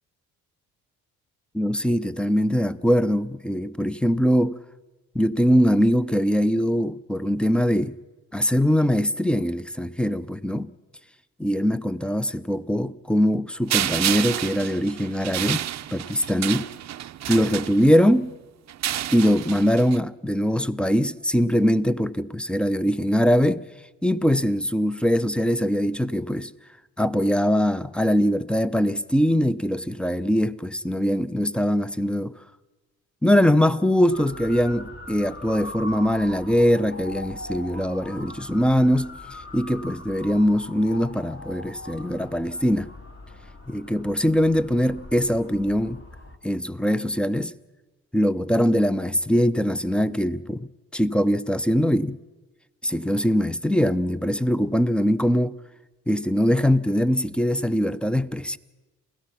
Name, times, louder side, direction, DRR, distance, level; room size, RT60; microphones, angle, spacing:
voice 1, 1.5-4.6 5.1-8.0 8.3-10.7 11.4-15.7 15.9-16.7 17.3-18.3 19.1-23.6 24.0-26.5 27.0-32.3 33.2-39.2 39.5-42.9 43.7-46.0 46.4-47.5 48.1-52.2 52.8-55.6 56.1-58.6, equal, 5° left, 0.7 m, -22 dB
sound 1, 13.7-18.2 18.7-20.0, right 12 dB, 50° right, 0.7 m, -29 dB
Motor vehicle (road) / Siren, 34.1-46.4, left 1 dB, 35° left, 2.5 m, -41 dB
28.5 x 16.0 x 5.9 m
supercardioid pair, 70°, 34 cm